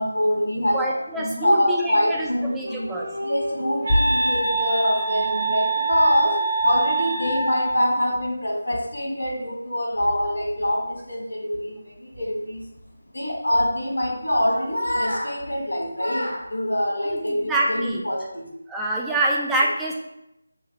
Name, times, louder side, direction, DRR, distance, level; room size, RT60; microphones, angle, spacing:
voice 1, 0.0-12.7 13.1-18.5, equal, 85° left, -1 dB, 1.5 m, -24 dB
voice 2, 0.7-3.1 17.0-18.0 18.7-19.9, right 1 dB, 5° right, -4 dB, 0.3 m, -26 dB
Wind instrument woodwind instrument, 2.5-7.9, right 2 dB, 70° right, 1.1 m, -25 dB
6.2 x 2.4 x 3.2 m, 0.84 s
figure-of-eight pair, 160°, 0 cm